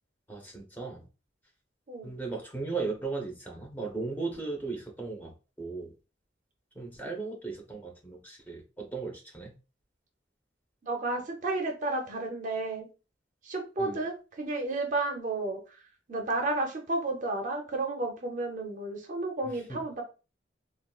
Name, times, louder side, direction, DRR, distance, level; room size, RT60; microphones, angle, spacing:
voice 1, 0.3-1.0 2.0-5.3 5.6-5.9 6.7-9.5 13.8-14.0 19.7-19.8, right 4 dB, 10° left, 1 dB, 0.6 m, -36 dB
voice 2, 1.9-2.2 10.8-12.9 13.4-20.0, right 2 dB, 40° right, 3 dB, 0.5 m, -32 dB
3.6 x 2.3 x 2.3 m, 0.32 s
head